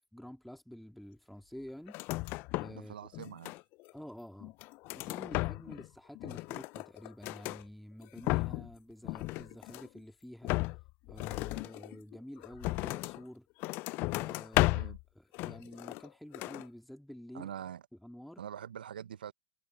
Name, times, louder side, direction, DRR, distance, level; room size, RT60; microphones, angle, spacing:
voice 1, 0.1-2.0 2.5-3.0 3.9-4.5 4.9-10.7 11.1-13.5 14.1-17.5 18.0-18.4, equal, ahead, 2.5 m, -49 dB
sound 1, 1.9-2.8 3.1-3.9 4.4-5.9 6.1-7.6 8.0-8.7 9.0-10.0 10.4-13.2 13.6-15.0 15.3-16.1 16.3-16.7, left 22 dB, 45° left, 0.7 m, -35 dB
voice 2, 2.6-3.5 14.7-15.0 17.3-17.8 18.4-19.3, right 9 dB, 75° right, 1.0 m, -44 dB
hypercardioid pair, 100°, 5 cm